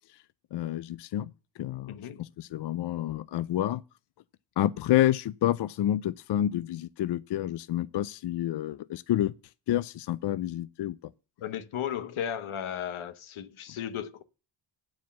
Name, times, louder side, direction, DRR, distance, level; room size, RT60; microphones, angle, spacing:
voice 1, 0.5-1.3 1.6-3.8 4.6-9.3 9.7-11.0, left 12 dB, 60° left, 0.5 m, -29 dB
voice 2, 1.9-2.2 11.4-14.2, left 9 dB, 85° left, 1.1 m, -35 dB
9.4 x 4.9 x 7.2 m
wide cardioid pair, 125°, 48 cm